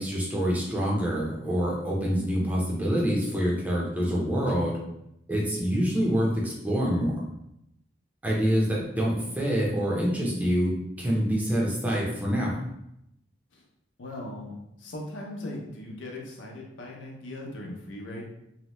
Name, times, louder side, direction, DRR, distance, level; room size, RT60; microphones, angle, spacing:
voice 1, 0.0-4.7 5.3-7.2 8.2-12.6, equal, 10° right, -4 dB, 0.5 m, -26 dB
voice 2, 14.0-18.2, left 1 dB, 90° left, -1 dB, 0.6 m, -39 dB
2.7 x 2.1 x 3.0 m, 0.82 s
head